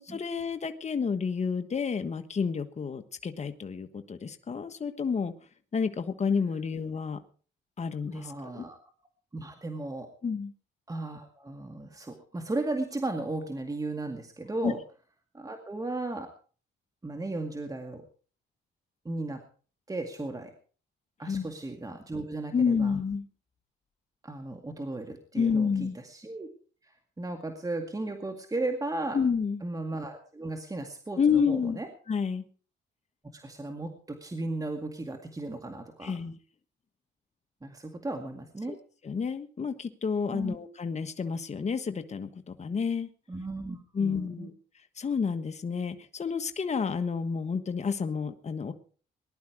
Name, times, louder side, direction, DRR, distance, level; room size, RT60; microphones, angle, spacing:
voice 1, 0.0-5.3 5.7-7.2 7.8-8.7 10.2-10.5 14.6-14.7 21.3-21.5 22.5-23.3 25.3-26.0 29.1-29.6 31.2-31.8 32.1-32.4 36.0-36.4 38.7-38.8 39.0-43.1 43.9-44.5 45.0-48.7, left 5 dB, 35° left, 9 dB, 1.4 m, -30 dB
voice 2, 8.1-8.8 9.3-10.1 10.9-14.8 15.3-16.3 17.0-18.0 19.0-19.4 19.9-20.5 21.2-22.9 24.2-26.5 26.8-26.9 27.2-29.2 29.6-31.9 33.3-36.2 37.6-38.8 40.2-40.6 43.3-44.5, right 2 dB, 15° right, 5 dB, 2.1 m, -35 dB
19.5 x 11.5 x 4.9 m, 0.42 s
cardioid pair, 90°, 20 cm